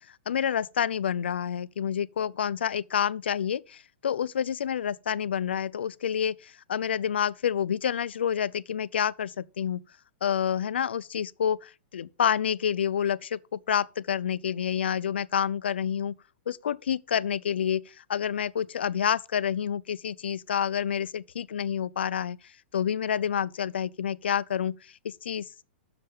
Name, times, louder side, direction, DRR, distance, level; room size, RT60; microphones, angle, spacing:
voice 1, 0.3-3.8 4.0-9.8 10.2-16.1 16.5-17.8 18.1-22.4 22.7-24.8 25.0-25.6, left 8 dB, 80° left, 0.5 m, -28 dB
7.5 x 6.8 x 5.4 m
hypercardioid pair, 115°, 6 cm